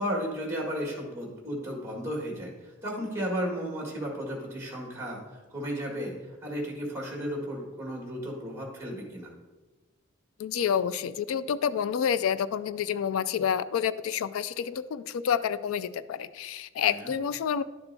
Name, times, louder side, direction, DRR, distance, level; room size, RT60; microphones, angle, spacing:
voice 1, 0.0-9.3 16.9-17.1, equal, 15° right, 0 dB, 1.8 m, -34 dB
voice 2, 10.4-17.6, left 8 dB, 80° left, 15 dB, 0.3 m, -28 dB
11.5 x 6.9 x 2.7 m, 1.2 s
head